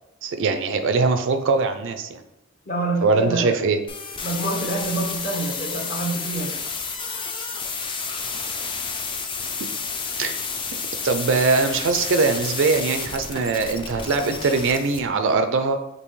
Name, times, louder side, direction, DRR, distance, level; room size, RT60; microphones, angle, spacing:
voice 1, 0.2-2.2 3.0-3.8 10.2-10.4 11.0-15.8, right 4 dB, 60° right, 8 dB, 0.4 m, -21 dB
voice 2, 2.7-3.6 4.2-6.5, right 2 dB, 40° left, -1 dB, 1.0 m, -27 dB
sound 1, 3.9-15.0, left 5 dB, 25° left, 0.4 m, -30 dB
5.2 x 3.0 x 3.1 m, 0.94 s
head